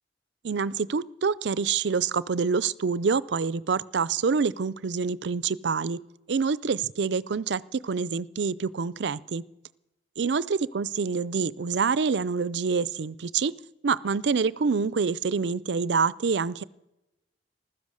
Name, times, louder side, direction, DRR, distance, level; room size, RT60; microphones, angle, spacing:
voice 1, 0.4-6.0 6.3-9.4 10.2-13.5 13.8-16.6, right 5 dB, 75° right, 20 dB, 0.5 m, -26 dB
15.0 x 13.0 x 6.4 m, 0.94 s
head